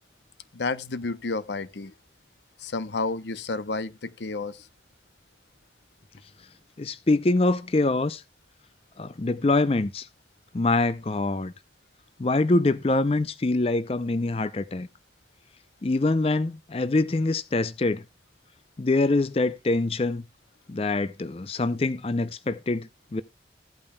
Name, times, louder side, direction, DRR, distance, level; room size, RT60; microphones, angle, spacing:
voice 1, 0.5-1.9 2.6-4.7, left 3 dB, 80° left, 0.7 m, -31 dB
voice 2, 6.8-8.2 9.0-10.1 10.5-11.5 12.2-14.9 15.8-18.0 18.8-20.2 20.7-23.2, left 2 dB, 35° left, 0.5 m, -24 dB
15.5 x 8.6 x 2.2 m
head